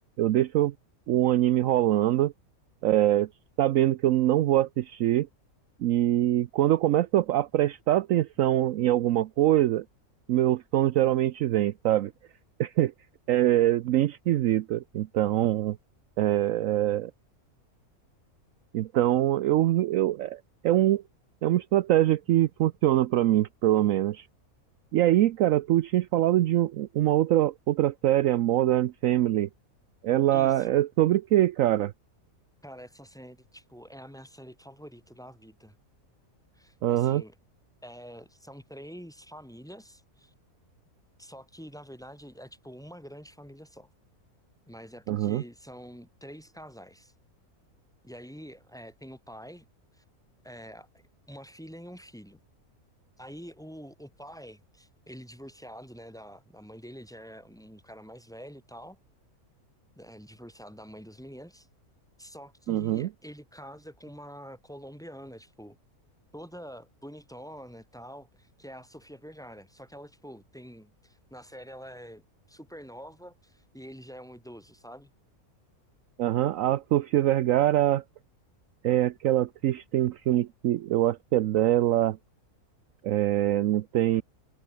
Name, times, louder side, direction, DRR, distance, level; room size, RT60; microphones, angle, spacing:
voice 1, 0.2-0.7 1.1-2.3 2.8-3.3 3.6-5.3 5.8-9.8 10.3-12.1 12.6-12.9 13.3-15.8 16.2-17.1 18.7-21.0 21.4-24.3 24.9-29.5 30.0-31.9 36.8-37.2 45.1-45.4 62.7-63.1 76.2-78.0 78.8-82.2 83.0-84.2, right 13 dB, 70° right, 1.0 m, -24 dB
voice 2, 30.3-30.7 32.6-35.8 36.5-37.3 37.8-40.3 41.2-43.9 44.7-47.1 48.0-49.7 49.9-50.0 50.4-52.4 53.2-59.0 60.0-61.7 62.2-65.8 66.3-75.1, equal, ahead, 4.6 m, -46 dB
omnidirectional pair, 1.6 m